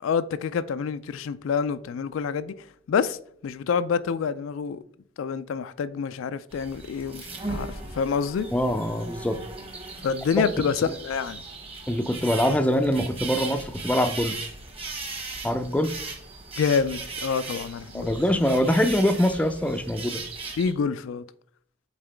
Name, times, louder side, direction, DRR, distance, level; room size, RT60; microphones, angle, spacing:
voice 1, 0.0-2.5 2.9-3.2 3.4-4.8 5.2-8.5 10.0-11.4 16.6-18.2 20.6-21.3, left 6 dB, 80° left, 0.3 m, -27 dB
sound 1, 6.5-20.7, right 3 dB, 30° right, 1.2 m, -37 dB
voice 2, 8.5-9.4 11.9-14.4 15.4-15.9 17.9-20.2, equal, 5° left, 0.4 m, -24 dB
7.3 x 3.9 x 3.4 m
head